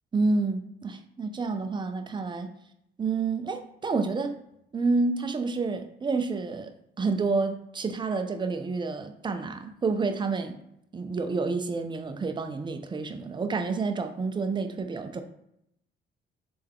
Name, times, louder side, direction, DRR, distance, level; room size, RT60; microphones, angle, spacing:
voice 1, 0.1-2.5 3.0-4.4 4.7-10.6 10.9-15.2, right 4 dB, 25° right, 7 dB, 0.5 m, -29 dB
3.5 x 3.3 x 3.5 m, 0.77 s
cardioid pair, 90°, 20 cm